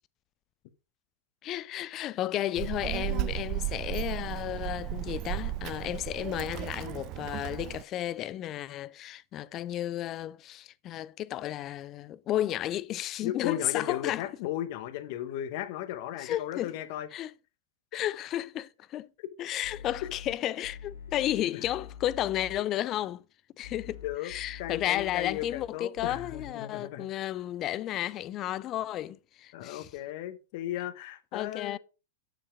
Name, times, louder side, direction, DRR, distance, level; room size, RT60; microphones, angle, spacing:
voice 1, 1.4-14.2 16.2-16.7 17.1-17.3 17.9-19.1 19.4-23.2 23.6-29.9 31.3-31.8, left 13 dB, 35° left, 0.4 m, -33 dB
Child speech kid speaking, 2.5-7.8, right 15 dB, 40° right, 0.4 m, -35 dB
voice 2, 13.2-17.1 24.0-24.3 24.6-27.1 29.5-31.8, left 12 dB, 55° left, 1.1 m, -35 dB
sound 1, 19.6-20.3 20.6-22.6 23.6-25.7 25.9-26.5, left 8 dB, 90° left, 2.4 m, -45 dB
7.1 x 5.7 x 4.8 m
hypercardioid pair, 115°, 0 cm